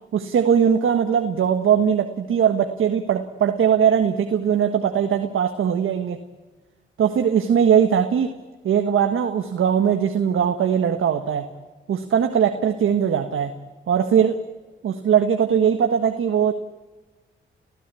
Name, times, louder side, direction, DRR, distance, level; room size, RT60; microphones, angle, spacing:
voice 1, 0.1-6.2 7.0-8.3 8.6-11.5 11.9-13.5 13.9-14.4 14.8-16.5, right 8 dB, 75° right, 6 dB, 1.5 m, -20 dB
29.5 x 16.0 x 8.4 m, 1.3 s
cardioid pair, 60°, 21 cm